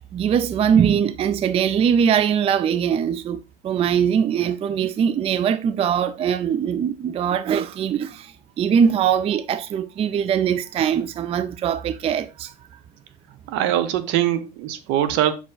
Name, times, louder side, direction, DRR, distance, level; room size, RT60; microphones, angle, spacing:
voice 1, 0.0-12.5, right 8 dB, 30° right, 0.4 m, -21 dB
voice 2, 13.5-15.3, right 11 dB, 65° right, 0.9 m, -22 dB
6.0 x 4.4 x 3.8 m
hypercardioid pair, 85°, 21 cm